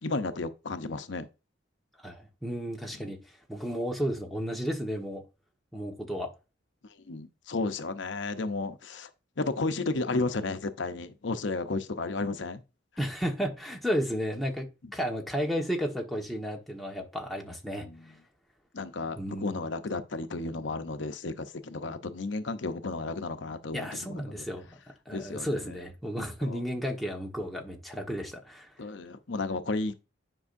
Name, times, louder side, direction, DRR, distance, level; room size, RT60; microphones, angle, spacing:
voice 1, 0.0-1.3 3.0-3.1 7.1-9.1 9.4-12.6 17.7-18.1 18.7-24.4 25.1-25.5 26.5-26.6 28.8-30.0, left 3 dB, 85° left, 0.8 m, -33 dB
voice 2, 2.0-3.2 3.5-5.2 5.7-6.3 13.0-17.9 19.2-19.6 23.7-24.7 25.0-28.7, equal, ahead, 1.3 m, -33 dB
9.8 x 5.5 x 2.6 m
head